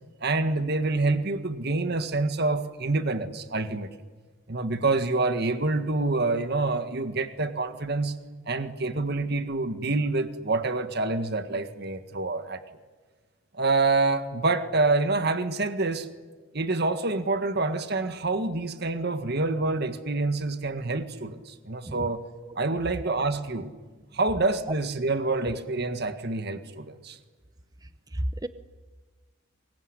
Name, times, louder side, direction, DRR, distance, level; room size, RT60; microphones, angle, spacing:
voice 1, 0.2-3.9 4.5-8.2 8.5-12.6 13.5-16.1 16.5-22.2 22.6-23.7 24.1-27.2, right 3 dB, 55° right, 9 dB, 1.8 m, -27 dB
voice 2, 28.1-28.5, right 1 dB, 20° right, 11 dB, 0.8 m, -31 dB
25.0 x 22.5 x 9.9 m, 1.4 s
head